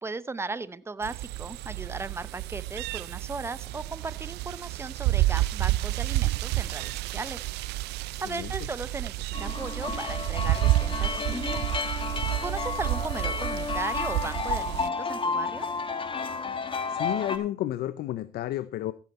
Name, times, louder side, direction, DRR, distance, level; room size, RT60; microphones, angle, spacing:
voice 1, 0.0-7.4 8.2-11.6 12.4-15.7, right 3 dB, 15° right, 16 dB, 0.7 m, -37 dB
sound 1, 1.0-14.9, right 17 dB, 80° right, 0.5 m, -30 dB
voice 2, 8.1-8.5 16.9-18.9, left 13 dB, 70° left, 15 dB, 0.6 m, -31 dB
sound 2, 9.3-17.4, left 4 dB, 30° left, 1.5 m, -31 dB
15.0 x 8.6 x 4.2 m, 0.36 s
cardioid pair, 110°, 17 cm